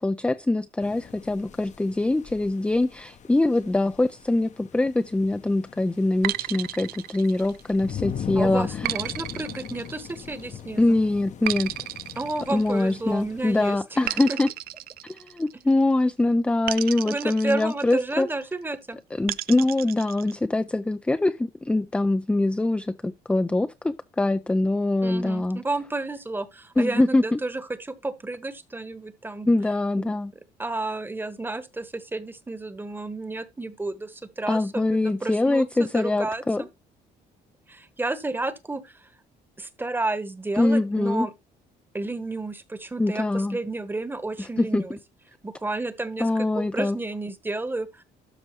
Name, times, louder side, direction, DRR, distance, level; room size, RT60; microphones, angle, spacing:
voice 1, 0.0-8.9 10.8-11.7 12.5-14.5 15.1-18.3 19.2-25.6 26.8-27.4 29.5-30.3 34.5-36.6 40.6-41.3 43.0-43.6 44.4-44.8 46.2-47.0, left 2 dB, 5° left, 0.4 m, -23 dB
sound 1, 0.8-13.8, left 8 dB, 45° left, 0.9 m, -40 dB
sound 2, 6.2-7.9 8.8-10.5 11.5-13.2 14.1-15.8 16.7-18.2 19.3-20.3, right 14 dB, 65° right, 0.4 m, -33 dB
voice 2, 8.3-11.0 12.2-14.0 14.3-14.4 17.0-19.0 25.0-29.5 30.0-30.1 30.6-36.7 37.7-38.9 39.6-41.3 41.9-45.0 45.4-48.0, right 2 dB, 10° right, 1.1 m, -31 dB
12.5 x 5.2 x 3.1 m
cardioid pair, 110°, 17 cm